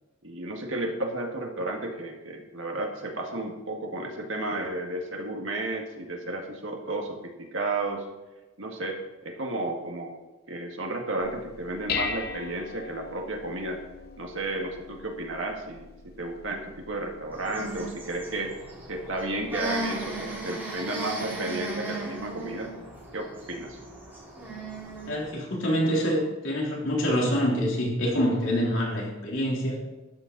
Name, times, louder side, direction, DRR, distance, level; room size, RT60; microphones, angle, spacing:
voice 1, 0.2-8.0 8.6-10.2 10.5-13.8 14.2-15.9 16.2-18.5 18.9-22.7 23.1-23.8, right 2 dB, 70° right, 2 dB, 1.9 m, -33 dB
Dishes pots and pans, 11.2-20.4, left 4 dB, 50° left, 0.9 m, -40 dB
sound 1, 17.3-25.3, right 2 dB, 10° right, 4.2 m, -37 dB
voice 2, 25.1-29.8, equal, 70° left, -3 dB, 3.6 m, -26 dB
12.5 x 9.3 x 4.0 m, 1.1 s
head